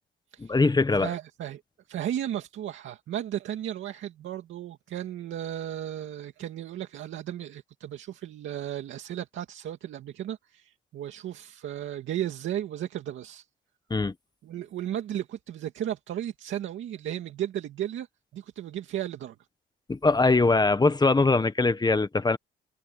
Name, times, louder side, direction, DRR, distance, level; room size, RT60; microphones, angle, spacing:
voice 1, 0.4-1.1 13.9-14.1 19.9-22.4, left 3 dB, 20° left, 1.3 m, -22 dB
voice 2, 1.0-1.6 1.9-13.5 14.4-18.1 18.3-19.4, right 11 dB, 75° right, 2.3 m, -34 dB
cardioid pair, 90°, 20 cm